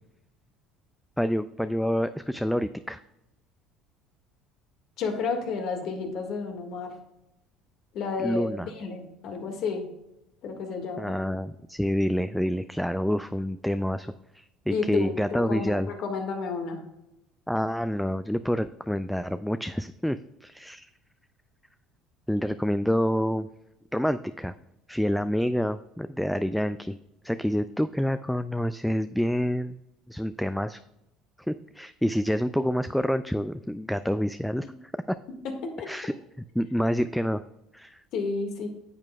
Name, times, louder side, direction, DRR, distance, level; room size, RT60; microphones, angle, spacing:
voice 1, 1.2-3.0 8.2-8.7 11.0-15.9 17.5-20.9 22.3-23.5 23.9-24.5 24.9-27.0 27.2-29.8 30.1-30.8 31.5-34.7 35.1-35.2 35.9-36.1 36.6-37.4 37.7-38.0, equal, ahead, 12 dB, 0.3 m, -27 dB
voice 2, 5.0-6.9 7.9-9.9 10.4-11.2 14.7-16.8 35.6-35.9 38.1-38.7, left 4 dB, 60° left, 4 dB, 1.6 m, -31 dB
9.6 x 7.4 x 2.2 m, 0.91 s
hypercardioid pair, 80°, 0 cm